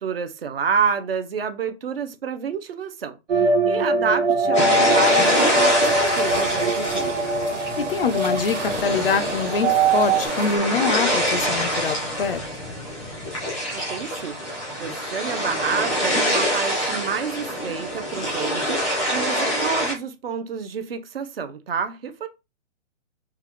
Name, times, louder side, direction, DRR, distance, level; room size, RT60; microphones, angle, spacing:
voice 1, 0.0-7.2 13.7-22.3, right 6 dB, 55° right, 0.7 m, -29 dB
sound 1, 3.3-10.3, right 2 dB, 85° right, 1.5 m, -22 dB
sound 2, 4.5-19.9, equal, ahead, 0.5 m, -25 dB
sound 3, 4.9-10.6, right 3 dB, 35° right, 2.2 m, -37 dB
voice 2, 7.8-12.4, left 5 dB, 50° left, 0.4 m, -24 dB
5.7 x 2.3 x 3.0 m
hypercardioid pair, 170°, 37 cm